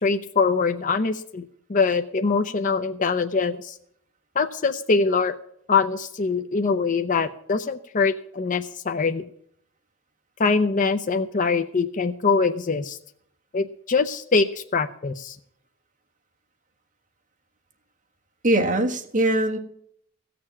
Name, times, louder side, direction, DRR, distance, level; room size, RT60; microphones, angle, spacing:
voice 1, 0.0-3.8 4.4-5.4 5.7-9.3 10.4-13.0 13.5-15.4, left 4 dB, 40° left, 8 dB, 0.6 m, -23 dB
voice 2, 18.4-19.6, right 1 dB, 40° right, 3 dB, 1.5 m, -21 dB
16.5 x 6.8 x 7.2 m, 0.67 s
head